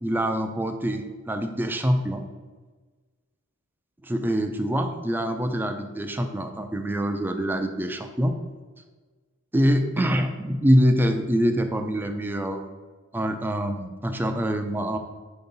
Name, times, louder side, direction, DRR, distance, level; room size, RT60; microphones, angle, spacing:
voice 1, 0.0-2.2 4.0-8.3 9.5-12.6 13.1-15.0, equal, 10° right, 5 dB, 0.4 m, -25 dB
4.8 x 4.0 x 5.3 m, 1.3 s
head